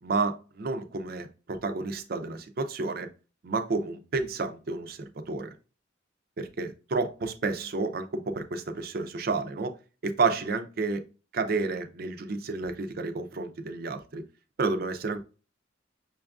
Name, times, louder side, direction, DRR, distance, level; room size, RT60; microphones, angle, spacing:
voice 1, 0.0-3.1 3.4-5.0 5.3-5.5 6.4-9.7 10.0-11.0 11.3-14.2 14.6-15.2, right 3 dB, 50° right, 0.5 m, -30 dB
5.9 x 2.3 x 2.4 m
head